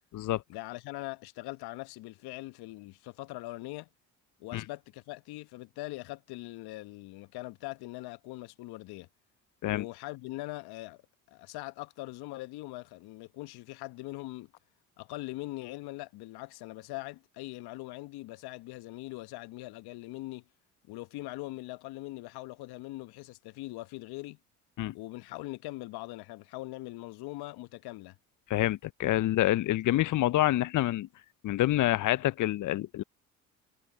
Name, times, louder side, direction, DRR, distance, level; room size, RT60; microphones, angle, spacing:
voice 1, 0.5-3.9 4.4-9.1 9.7-11.0 11.3-14.5 15.0-20.4 20.9-24.4 24.9-28.2 29.2-29.3, left 19 dB, 60° left, 1.2 m, -41 dB
voice 2, 28.5-31.1 31.4-33.0, left 15 dB, 45° left, 0.7 m, -27 dB
hypercardioid pair, 60°, 42 cm